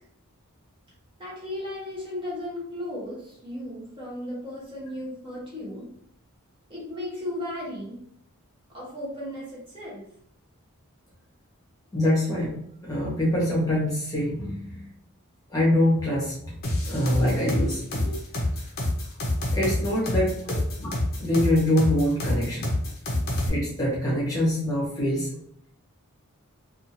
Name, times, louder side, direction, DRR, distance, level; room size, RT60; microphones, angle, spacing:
voice 1, 1.2-5.9 6.7-8.0 8.7-10.0, left 1 dB, 25° right, -7 dB, 0.8 m, -35 dB
voice 2, 11.9-12.5 12.8-14.8 15.5-16.4 16.9-18.1 19.5-20.9 21.2-22.7 23.5-25.3, left 1 dB, 15° left, -6 dB, 0.9 m, -24 dB
sound 1, 16.6-23.5, left 1 dB, 45° left, 0.6 m, -27 dB
2.6 x 2.4 x 2.8 m, 0.67 s
head